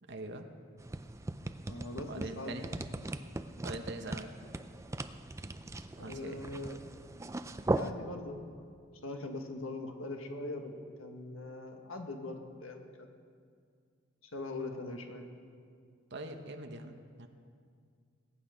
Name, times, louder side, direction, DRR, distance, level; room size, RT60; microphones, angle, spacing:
voice 1, 0.0-0.5 2.0-2.7 3.6-4.3 6.0-6.4 16.1-17.3, right 2 dB, 55° right, 5 dB, 0.9 m, -43 dB
sound 1, 0.8-7.9, right 2 dB, 15° right, 0.4 m, -39 dB
voice 2, 1.7-2.6 6.0-6.8 7.7-8.7 9.0-10.7 11.0-13.1 14.3-15.3, left 2 dB, 85° left, 4 dB, 1.5 m, -41 dB
20.5 x 9.1 x 5.0 m, 2.2 s
head